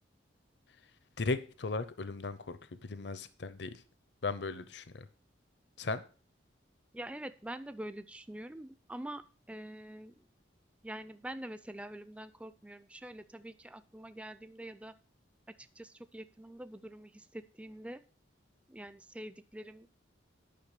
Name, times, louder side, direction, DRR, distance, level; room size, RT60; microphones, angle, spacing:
voice 1, 1.2-3.8 4.2-5.1 5.8-6.0, left 3 dB, 65° left, 0.7 m, -37 dB
voice 2, 6.9-9.2 9.5-10.1 10.8-14.9 15.6-18.0 18.7-19.9, right 1 dB, 5° right, 0.4 m, -45 dB
10.0 x 5.9 x 6.7 m
head